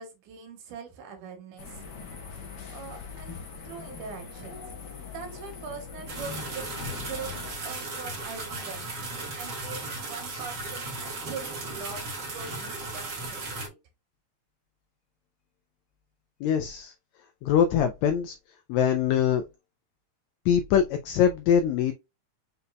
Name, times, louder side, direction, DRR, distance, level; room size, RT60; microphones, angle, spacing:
voice 1, 0.0-1.9 2.7-3.4 3.6-4.8 5.1-8.8 9.3-12.0 12.3-13.8, right 5 dB, 80° right, 2.7 m, -42 dB
sound 1, 1.6-7.5, left 5 dB, 65° left, 1.0 m, -41 dB
sound 2, 6.1-13.7, right 2 dB, 45° right, 1.7 m, -36 dB
voice 2, 16.4-16.9 17.4-18.4 18.7-19.4 20.5-21.9, left 8 dB, 80° left, 1.7 m, -23 dB
5.5 x 4.0 x 2.2 m
omnidirectional pair, 3.6 m